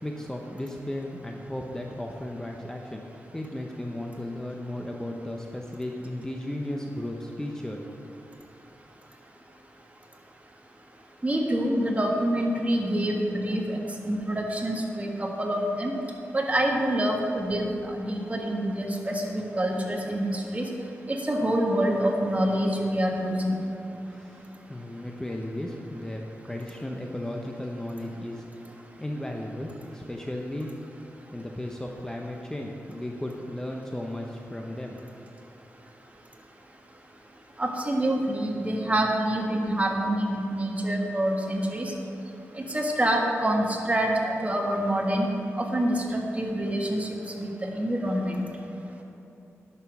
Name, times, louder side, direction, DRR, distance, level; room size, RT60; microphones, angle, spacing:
voice 1, 0.0-8.0 23.9-28.7 29.0-30.8 31.3-35.0, left 1 dB, 10° left, 1 dB, 0.8 m, -35 dB
voice 2, 11.2-13.8 14.1-15.9 16.3-20.7 21.1-23.6 37.6-41.9 42.5-45.3 45.6-48.4, right 1 dB, 25° right, 0 dB, 1.6 m, -26 dB
10.5 x 6.9 x 6.1 m, 2.8 s
cardioid pair, 75°, 5 cm